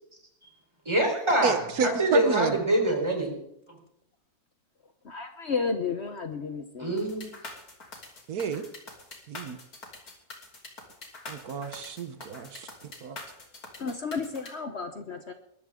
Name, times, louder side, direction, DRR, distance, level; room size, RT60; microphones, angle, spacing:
voice 1, 0.9-3.4 6.8-7.3, right 1 dB, 20° right, 1 dB, 4.0 m, -25 dB
voice 2, 1.4-2.6 8.3-8.6 9.3-9.6 11.3-12.7 13.0-13.2, right 6 dB, 75° right, 9 dB, 1.5 m, -30 dB
voice 3, 5.0-6.9 13.8-15.3, left 5 dB, 50° left, 7 dB, 1.2 m, -32 dB
sound 1, 7.0-14.5, left 2 dB, 75° left, 3.5 m, -44 dB
21.5 x 13.5 x 3.7 m, 0.78 s
omnidirectional pair, 1.6 m